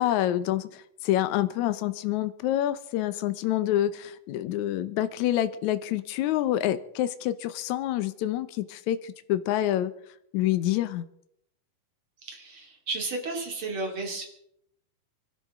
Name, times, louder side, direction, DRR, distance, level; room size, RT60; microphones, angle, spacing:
voice 1, 0.0-9.9 10.3-11.1, left 13 dB, 70° left, 12 dB, 1.9 m, -27 dB
voice 2, 12.2-14.3, right 3 dB, 40° right, 2 dB, 3.0 m, -33 dB
25.5 x 12.5 x 3.7 m, 0.73 s
omnidirectional pair, 3.9 m